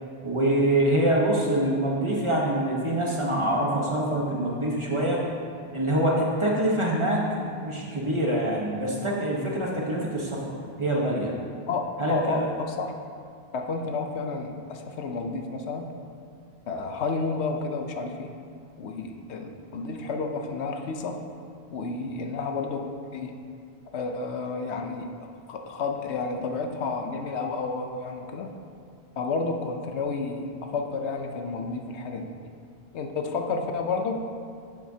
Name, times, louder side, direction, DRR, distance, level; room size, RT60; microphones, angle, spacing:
voice 1, 0.2-5.2 5.7-11.3 12.0-12.5, right 1 dB, 30° right, -3 dB, 1.1 m, -25 dB
voice 2, 12.1-13.0 13.5-15.9 16.7-18.3 18.8-21.2 21.7-23.3 23.9-25.1 25.5-28.5 29.2-32.3 32.9-34.2, left 4 dB, 85° left, 4 dB, 1.0 m, -31 dB
11.0 x 7.3 x 2.8 m, 2.3 s
omnidirectional pair, 1.1 m